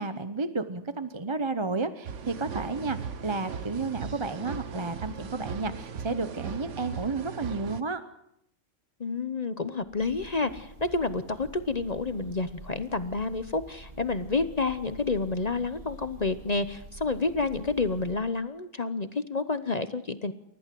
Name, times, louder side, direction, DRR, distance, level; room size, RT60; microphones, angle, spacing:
voice 1, 0.0-8.0, right 3 dB, 25° right, 11 dB, 0.9 m, -32 dB
sound 1, 2.0-7.8, right 6 dB, 85° right, 1.4 m, -38 dB
voice 2, 9.0-20.3, left 3 dB, 35° left, 11 dB, 0.9 m, -29 dB
Breathing / Bird, 9.8-18.3, right 2 dB, 45° right, 3.0 m, -48 dB
29.0 x 14.5 x 7.7 m, 0.77 s
omnidirectional pair, 1.2 m